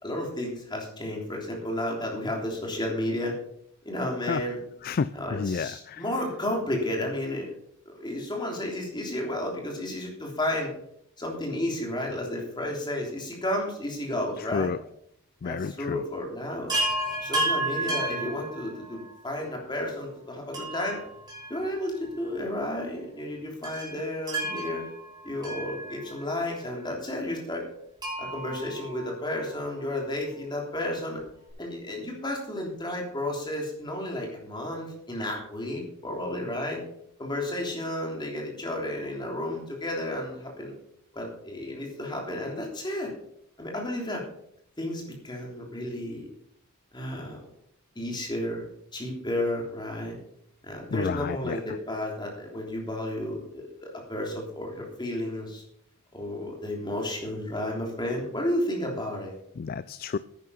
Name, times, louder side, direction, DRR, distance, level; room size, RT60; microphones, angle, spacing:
voice 1, 0.0-3.3 3.8-4.6 5.1-7.5 7.8-10.7 11.2-14.7 15.4-16.7 17.2-21.0 21.5-24.9 25.2-27.6 28.2-31.2 31.6-36.8 37.2-40.7 41.1-43.1 43.6-44.2 44.8-46.3 46.9-47.4 47.9-48.6 48.9-50.2 50.6-55.6 56.1-59.3, left 1 dB, 20° left, 0 dB, 3.2 m, -32 dB
voice 2, 4.8-6.0 14.5-14.8 15.4-16.0 50.9-51.6 59.6-60.2, left 5 dB, 45° left, 16 dB, 0.3 m, -30 dB
Chime, 16.7-19.1 20.5-22.1 22.3-22.4 23.6-26.3 28.0-29.6 31.2-31.3 31.5-31.6, right 1 dB, 20° right, 5.3 m, -32 dB
10.5 x 9.7 x 5.6 m, 0.71 s
head